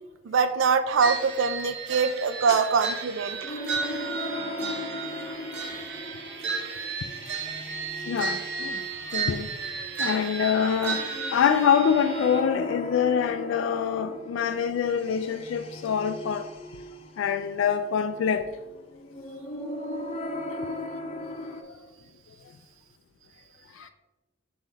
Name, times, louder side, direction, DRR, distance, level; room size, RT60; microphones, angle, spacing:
voice 1, 0.2-3.6, right 5 dB, 80° right, 0.4 m, -24 dB
sound 1, 1.0-12.4, right 4 dB, 60° right, 0.8 m, -33 dB
sound 2, 3.4-21.6, left 1 dB, 30° left, 0.7 m, -38 dB
voice 2, 8.1-8.8 9.1-9.5 10.0-11.0 11.3-16.5 17.2-18.4 23.8-23.9, left 7 dB, 75° left, 0.3 m, -25 dB
6.2 x 3.8 x 4.1 m
head